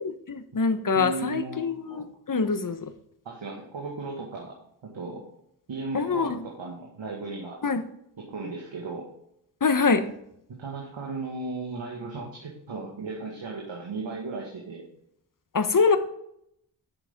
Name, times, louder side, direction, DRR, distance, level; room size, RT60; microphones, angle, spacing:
voice 1, 0.0-2.9 5.9-6.4 7.6-7.8 9.6-10.0 15.5-16.0, left 4 dB, 40° left, 9 dB, 1.2 m, -24 dB
voice 2, 0.9-2.0 3.3-4.6 4.8-5.2 5.7-7.6 8.2-9.1 10.5-14.8, right 3 dB, 70° right, -2 dB, 2.0 m, -36 dB
9.6 x 7.1 x 3.7 m, 0.75 s
cardioid pair, 45°, 47 cm